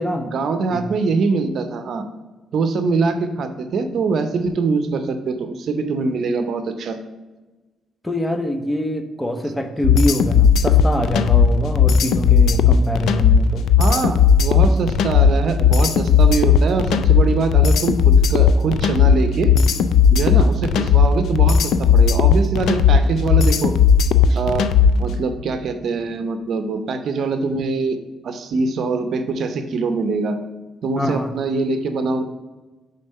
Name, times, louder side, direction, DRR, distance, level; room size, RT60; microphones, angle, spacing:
voice 1, 0.2-2.0 2.5-7.0 13.8-19.5 20.1-23.7 24.3-24.7 25.0-28.0 28.2-30.4 30.8-32.2, right 4 dB, 65° right, 8 dB, 0.6 m, -23 dB
voice 2, 8.0-13.7 20.4-20.5 31.0-31.3, equal, 10° left, 7 dB, 0.6 m, -24 dB
sound 1, 9.8-25.1, left 7 dB, 75° left, 0.4 m, -15 dB
5.3 x 3.8 x 5.4 m, 1.2 s
cardioid pair, 90°, 0 cm